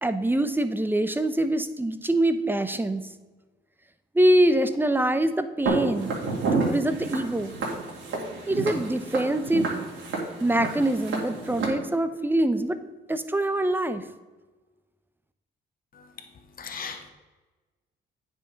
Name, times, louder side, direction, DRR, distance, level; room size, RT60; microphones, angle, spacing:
voice 1, 0.0-3.1 4.1-6.1 6.5-7.5 8.5-9.7 10.4-12.8 13.1-14.0, right 1 dB, 10° right, 11 dB, 0.7 m, -24 dB
Walk footsteps, 5.7-11.7, right 3 dB, 70° right, 2.9 m, -30 dB
voice 2, 16.6-17.1, left 6 dB, 45° left, 5 dB, 1.2 m, -37 dB
9.4 x 5.5 x 5.1 m, 1.2 s
cardioid pair, 90°, 20 cm